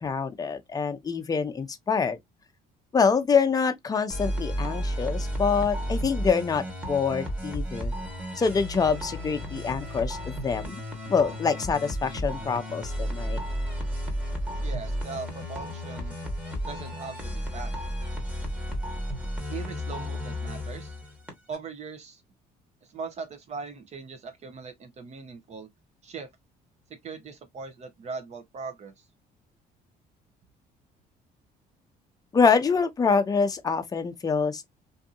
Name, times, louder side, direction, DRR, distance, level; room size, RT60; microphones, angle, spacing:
voice 1, 0.0-2.2 2.9-7.9 8.4-10.8 11.1-13.4 32.3-34.7, left 5 dB, 20° left, 0.6 m, -25 dB
sound 1, 4.1-21.6, equal, 10° right, 1.3 m, -33 dB
voice 2, 14.6-16.2 16.7-17.8 19.5-21.0 21.5-22.2 22.9-25.7 26.0-26.3 27.0-28.9, right 5 dB, 40° right, 0.7 m, -40 dB
2.7 x 2.6 x 2.4 m
cardioid pair, 110°, 17 cm